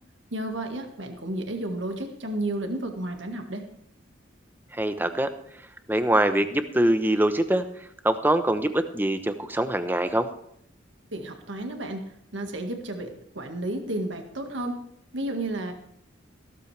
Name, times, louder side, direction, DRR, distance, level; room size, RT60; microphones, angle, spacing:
voice 1, 0.3-3.6 11.1-12.0 12.3-14.8 15.1-15.7, right 1 dB, 65° right, 5 dB, 1.8 m, -32 dB
voice 2, 4.7-5.3 5.9-7.6 8.0-10.3, right 1 dB, 10° right, 9 dB, 0.9 m, -23 dB
16.0 x 13.5 x 3.4 m, 0.72 s
head